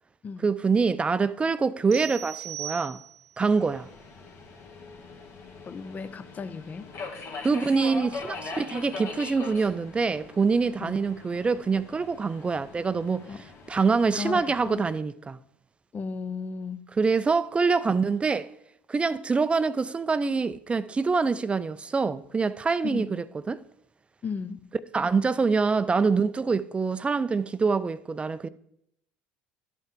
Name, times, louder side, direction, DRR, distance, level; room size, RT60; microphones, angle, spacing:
voice 1, 0.4-3.0 3.4-3.9 7.4-13.3 13.7-15.4 17.0-18.5 18.9-23.6 24.9-28.5, right 4 dB, 20° right, 0.4 m, -25 dB
sound 1, 1.9-3.5, right 13 dB, 65° right, 0.9 m, -38 dB
Subway metro underground, 3.5-15.0, left 4 dB, 60° left, 1.6 m, -42 dB
voice 2, 5.6-6.9 10.8-11.0 13.3-13.4 14.1-14.9 15.9-16.9 22.8-23.2 24.2-24.6, left 5 dB, 35° left, 0.5 m, -35 dB
11.5 x 5.5 x 3.6 m
hypercardioid pair, 80°, 5 cm